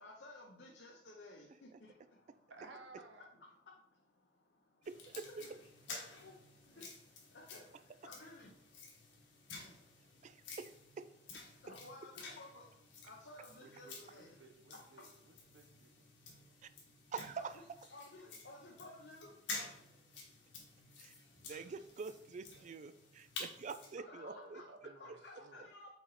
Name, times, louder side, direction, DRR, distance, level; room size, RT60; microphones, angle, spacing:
voice 1, 0.0-2.0 3.3-4.9 5.3-5.6 6.1-10.6 11.6-14.3 14.7-14.8 17.4-17.6 17.9-20.4 20.7-20.8 24.0-25.9, left 2 dB, 65° left, 0 dB, 0.8 m, -56 dB
voice 2, 2.5-3.3 13.6-16.1 22.5-22.9 24.2-25.7, right 3 dB, 70° right, 5 dB, 0.9 m, -58 dB
sound 1, 4.8-23.9, left 3 dB, 85° left, 1.5 m, -51 dB
voice 3, 4.9-5.3 10.2-10.7 11.0-11.1 17.1-17.5 21.0-21.1 21.5-24.6, right 5 dB, 40° right, 11 dB, 0.3 m, -46 dB
5.7 x 4.0 x 4.2 m, 0.74 s
head